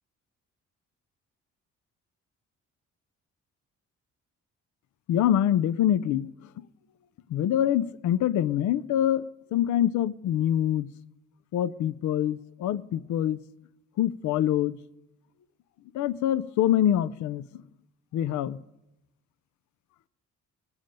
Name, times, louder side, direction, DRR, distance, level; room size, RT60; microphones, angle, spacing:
voice 1, 5.1-6.3 7.3-9.2 9.5-10.9 11.5-13.4 14.0-14.8 15.9-17.4 18.1-18.6, left 11 dB, 70° left, 0.5 m, -25 dB
20.5 x 7.3 x 5.2 m
cardioid pair, 90°, 30 cm